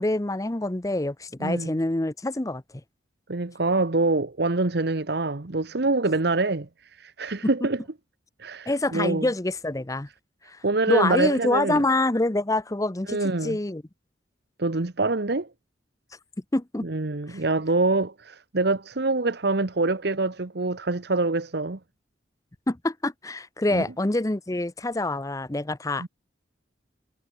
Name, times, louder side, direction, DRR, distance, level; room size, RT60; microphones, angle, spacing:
voice 1, 0.0-2.6 7.6-7.7 8.7-10.1 10.5-13.8 16.5-16.9 17.3-17.4 22.7-26.1, left 2 dB, 20° left, 0.7 m, -26 dB
voice 2, 3.3-6.7 7.0-7.8 8.4-9.3 10.6-11.8 13.1-13.6 14.6-15.5 16.8-21.8 23.7-23.8 26.0-26.1, right 3 dB, 60° right, 1.1 m, -25 dB
head